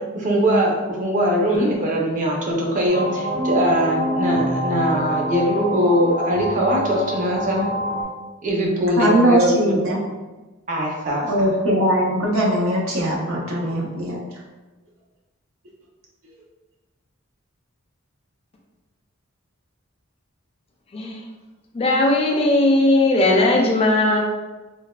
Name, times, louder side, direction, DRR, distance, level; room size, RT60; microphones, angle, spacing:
voice 1, 0.1-7.6 8.4-9.9 10.7-11.5, equal, 40° right, -1 dB, 0.5 m, -21 dB
sound 1, 2.9-8.0, equal, 65° right, 1.1 m, -25 dB
voice 2, 9.0-10.0 11.3-14.2, right 1 dB, 80° right, -3 dB, 0.7 m, -20 dB
voice 3, 21.7-24.2, left 2 dB, 30° left, 0 dB, 0.3 m, -18 dB
3.2 x 2.1 x 2.2 m, 1.2 s
head